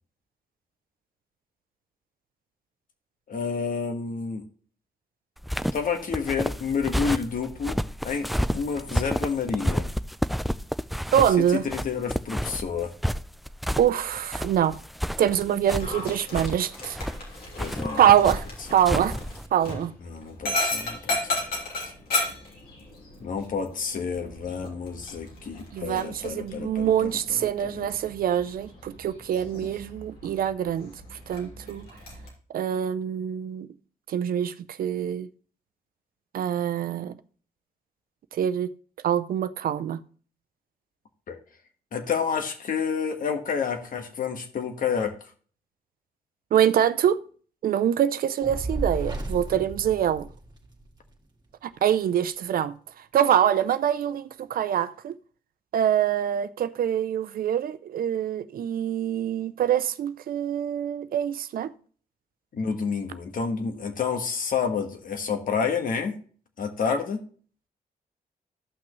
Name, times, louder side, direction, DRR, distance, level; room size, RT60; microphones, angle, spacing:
voice 1, 3.3-4.4 5.7-8.3 8.5-9.9 11.4-12.9 17.6-18.1 20.0-21.2 23.2-27.9 41.3-41.4 41.9-45.3 62.5-66.1 66.6-67.2, left 6 dB, 65° left, 1.5 m, -29 dB
sound 1, 5.4-19.5, equal, ahead, 0.4 m, -30 dB
voice 2, 11.1-11.6 13.8-14.8 15.2-17.0 17.9-19.2 19.5-19.9 25.7-31.9 32.5-33.7 34.1-35.3 36.3-37.1 38.3-38.7 39.0-40.0 46.5-47.2 47.6-50.3 51.6-55.2 55.7-61.7, right 10 dB, 75° right, 0.6 m, -24 dB
Dog, 15.7-32.3, left 2 dB, 80° left, 3.2 m, -35 dB
Fire, 48.4-50.9, right 2 dB, 30° right, 1.9 m, -33 dB
13.0 x 6.0 x 3.1 m
cardioid pair, 70°, 15 cm